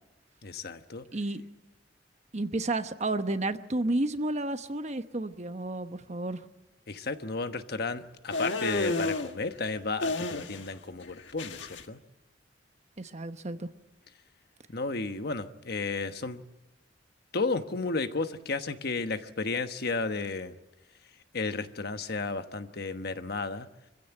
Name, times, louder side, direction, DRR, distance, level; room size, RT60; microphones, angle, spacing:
voice 1, 0.4-1.1 6.9-12.0 14.7-16.4 17.3-20.5 21.3-23.7, left 3 dB, 60° left, 9 dB, 1.2 m, -33 dB
voice 2, 2.3-6.4 13.0-13.7, right 2 dB, 40° right, 10 dB, 1.0 m, -31 dB
sound 1, 8.3-9.3 10.0-10.8 11.0-11.8, left 2 dB, 85° left, 1.5 m, -31 dB
25.5 x 15.5 x 9.1 m, 0.99 s
head